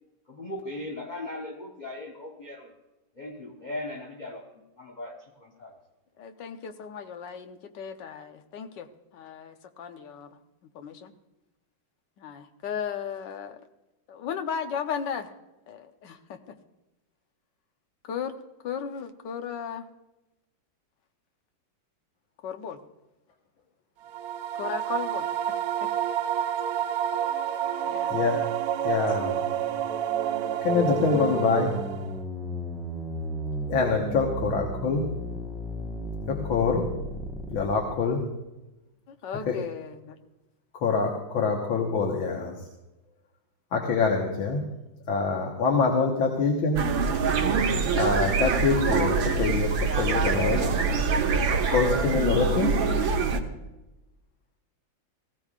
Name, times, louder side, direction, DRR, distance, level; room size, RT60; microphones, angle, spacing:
voice 1, 0.3-2.7 3.2-4.5 4.8-5.7, left 2 dB, 30° left, 0 dB, 0.9 m, -38 dB
voice 2, 6.2-8.9 9.1-10.3 10.7-11.1 12.2-13.6 14.1-15.3 15.7-16.5 18.1-18.3 18.6-19.8 22.4-22.8 24.6-25.3 25.8-25.9 27.8-28.1 39.1-40.2, left 7 dB, 70° left, 6 dB, 1.5 m, -35 dB
sound 1, 24.1-32.2, right 10 dB, 70° right, 0.9 m, -29 dB
voice 3, 28.8-29.4 30.6-31.8 33.7-35.0 36.3-36.9 37.5-38.2 39.5-39.6 40.8-42.6 43.7-44.6 45.1-46.8 48.0-50.6 51.7-52.7, left 4 dB, 85° left, 0 dB, 2.1 m, -25 dB
sound 2, 29.2-37.9, equal, ahead, 0.9 m, -36 dB
sound 3, 46.8-53.4, right 5 dB, 90° right, 1.9 m, -25 dB
19.5 x 15.5 x 2.5 m, 1.0 s
omnidirectional pair, 2.1 m